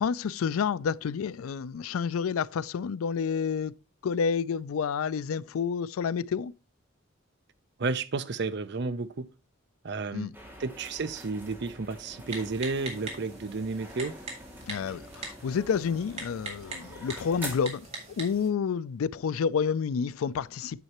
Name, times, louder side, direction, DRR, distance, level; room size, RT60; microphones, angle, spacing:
voice 1, 0.0-3.7 4.0-6.5 10.1-10.3 14.7-17.9 18.2-20.8, left 6 dB, 85° left, 0.4 m, -29 dB
voice 2, 7.8-9.3 9.8-10.3 10.6-14.2, right 3 dB, 55° right, 0.6 m, -32 dB
sound 1, 10.3-17.6, equal, 10° right, 2.2 m, -45 dB
Typing, 12.3-18.5, right 3 dB, 30° right, 2.2 m, -42 dB
9.4 x 6.5 x 2.9 m
head